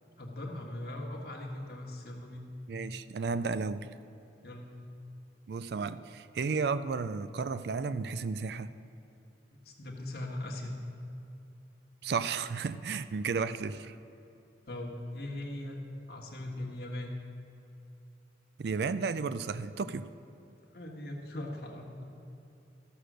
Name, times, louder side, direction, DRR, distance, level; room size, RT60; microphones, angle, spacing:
voice 1, 0.2-2.5 4.4-4.7 9.5-10.7 14.7-15.8 16.1-17.1 20.7-22.0, left 1 dB, 60° left, 0 dB, 1.5 m, -40 dB
voice 2, 2.7-3.9 5.5-8.7 12.0-14.0 18.6-20.1, right 5 dB, 65° right, 14 dB, 0.4 m, -33 dB
14.0 x 6.7 x 6.2 m, 2.8 s
head